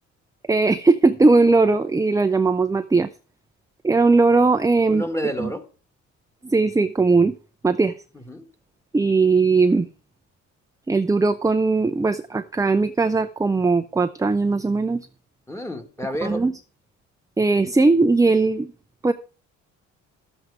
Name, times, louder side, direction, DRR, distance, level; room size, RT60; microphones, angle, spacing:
voice 1, 0.5-3.1 3.8-5.0 5.4-5.5 6.4-7.4 7.6-7.9 8.9-9.9 10.9-15.1 16.2-16.5 17.4-18.7 19.0-19.1, right 3 dB, 10° right, 0.5 m, -19 dB
voice 2, 4.9-5.6 8.1-8.4 15.5-16.5, equal, 10° left, 1.8 m, -30 dB
12.0 x 7.9 x 4.8 m
cardioid pair, 90°, 30 cm